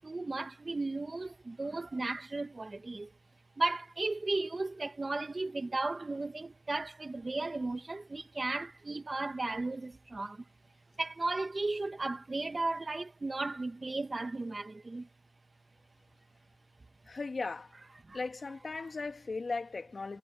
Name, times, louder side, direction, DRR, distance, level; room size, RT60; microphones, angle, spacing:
voice 1, 0.0-3.1 3.6-10.4 11.0-15.1 18.1-18.2, right 2 dB, 20° right, 1.2 m, -35 dB
voice 2, 17.1-17.7 18.1-20.2, left 3 dB, 30° left, 2.3 m, -37 dB
cardioid pair, 90°, 0 cm